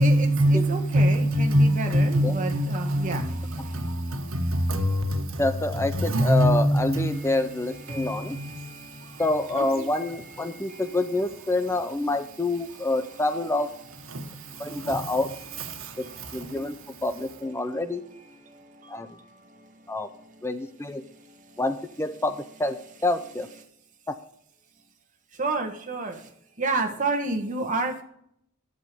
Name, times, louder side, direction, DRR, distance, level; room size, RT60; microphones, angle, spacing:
voice 1, 0.0-3.2 3.7-5.4 6.0-7.3 7.9-8.7 14.1-14.2 14.7-14.9, equal, 80° right, 1.6 m, -23 dB
voice 2, 0.7-3.2 9.6-9.7 25.4-26.1 26.6-28.0, right 3 dB, 40° right, 1.7 m, -29 dB
voice 3, 5.4-8.4 9.2-13.7 14.6-15.3 16.0-16.1 16.3-16.8 17.0-18.0 18.9-19.1 19.9-20.1 20.4-21.0 21.6-22.8 23.0-23.5 24.1-24.2, left 2 dB, 15° left, 0.6 m, -27 dB
11.0 x 7.9 x 5.1 m
head